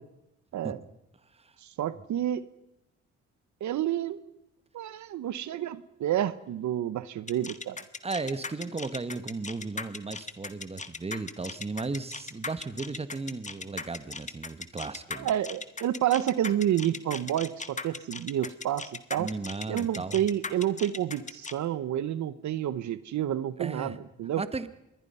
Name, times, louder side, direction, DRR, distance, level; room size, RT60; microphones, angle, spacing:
voice 1, 1.6-2.4 3.6-4.3 4.7-7.8 15.2-19.3 19.7-24.4, right 11 dB, 70° right, 15 dB, 1.0 m, -29 dB
sound 1, 7.3-21.5, left 4 dB, 25° left, 1.6 m, -38 dB
voice 2, 8.0-15.3 19.2-20.2 23.6-24.0 24.3-24.7, right 3 dB, 20° right, 13 dB, 1.4 m, -35 dB
26.5 x 21.5 x 5.6 m, 0.87 s
cardioid pair, 90°, 30 cm